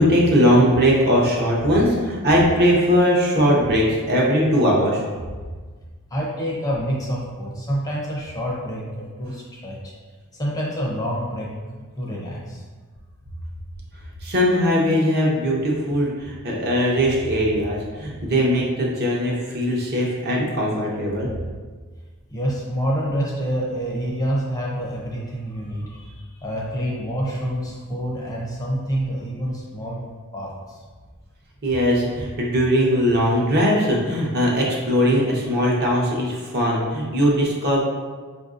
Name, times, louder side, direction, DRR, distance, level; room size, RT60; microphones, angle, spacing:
voice 1, 0.0-5.0 14.2-21.3 31.6-37.8, equal, 45° right, -3 dB, 0.7 m, -20 dB
voice 2, 6.1-9.9 10.3-11.5 12.0-12.6 22.3-30.0 30.3-30.8, equal, 15° left, -4 dB, 0.4 m, -27 dB
4.7 x 2.5 x 2.4 m, 1.4 s
head